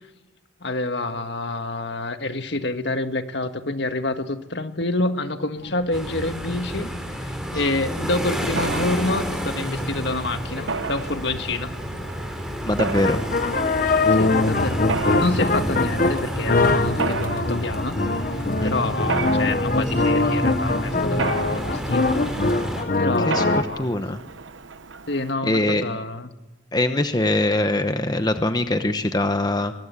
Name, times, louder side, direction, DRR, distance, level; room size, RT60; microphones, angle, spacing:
voice 1, 0.6-11.7 14.1-14.8 15.1-22.1 23.0-23.9 25.1-26.3, left 2 dB, 65° left, 8 dB, 1.7 m, -27 dB
sound 1, 5.6-6.2 6.5-7.2 7.6-7.7 7.9-8.0 8.2-10.2 10.5-11.9 12.4-12.5 13.0-23.6, left 3 dB, 45° left, 1.0 m, -23 dB
sound 2, 5.9-22.8, equal, 5° right, 3.9 m, -29 dB
Mechanisms, 8.6-25.3, right 4 dB, 80° right, 1.0 m, -34 dB
voice 2, 12.6-13.2 18.6-18.7 23.2-23.4 23.8-24.2 25.4-25.8 26.7-29.7, left 1 dB, 20° left, 8 dB, 1.0 m, -22 dB
23.5 x 20.0 x 8.3 m, 1.0 s
head